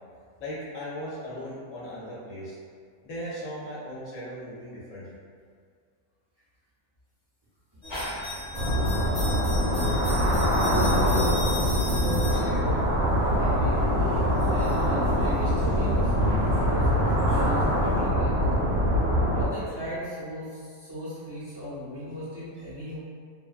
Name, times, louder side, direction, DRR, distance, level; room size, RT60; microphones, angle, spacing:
voice 1, 0.4-2.6 3.0-5.1, equal, 65° left, -7 dB, 0.9 m, -37 dB
sound 1, 7.8-18.0, left 1 dB, 30° left, 0.9 m, -38 dB
sound 2, 8.5-19.5, equal, 70° right, 1.0 m, -24 dB
voice 2, 9.7-13.9 14.5-18.3 19.3-23.0, equal, 25° right, -13 dB, 0.6 m, -36 dB
2.6 x 2.1 x 2.4 m, 2.1 s
omnidirectional pair, 1.5 m